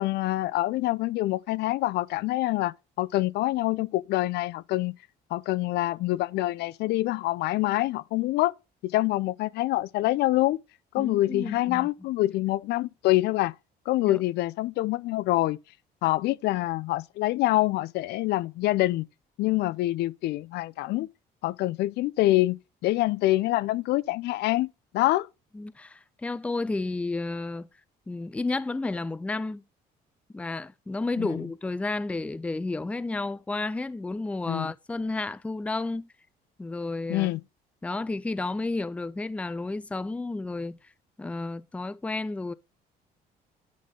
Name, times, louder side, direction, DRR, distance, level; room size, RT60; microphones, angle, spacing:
voice 1, 0.0-4.9 5.3-8.5 8.8-10.6 10.9-13.5 13.9-15.6 16.0-19.1 19.4-21.1 21.4-24.7 24.9-25.3 31.2-31.3 34.5-34.7 37.1-37.4, left 17 dB, 75° left, 0.4 m, -26 dB
voice 2, 11.0-11.9 14.1-14.2 25.5-27.7 28.1-29.6 30.3-36.1 36.6-37.3 37.8-40.9 41.2-42.5, left 3 dB, 5° left, 0.4 m, -32 dB
10.5 x 4.3 x 3.6 m
cardioid pair, 110°, 17 cm